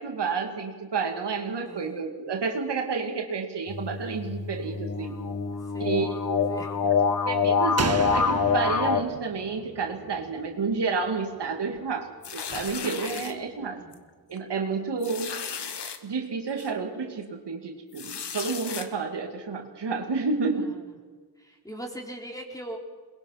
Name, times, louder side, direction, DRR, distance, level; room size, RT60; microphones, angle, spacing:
voice 1, 0.0-5.2 5.8-6.1 7.3-13.8 14.3-15.4 16.0-20.8, right 4 dB, 80° right, 3 dB, 2.4 m, -30 dB
voice 2, 1.6-2.0 5.7-7.1 13.1-14.0 20.6-20.8 21.4-22.8, right 1 dB, 10° left, 0 dB, 4.4 m, -42 dB
sound 1, 3.7-9.0, left 6 dB, 50° left, 1.6 m, -26 dB
Slam, 7.8-11.3 11.6-11.7, right 6 dB, 40° right, 0.9 m, -34 dB
sound 2, 12.2-13.3 13.9-14.1 14.4-14.5 15.0-16.0 16.6-16.7 17.9-18.9, left 7 dB, 80° left, 1.6 m, -36 dB
22.5 x 21.0 x 5.8 m, 1.5 s
cardioid pair, 80°, 41 cm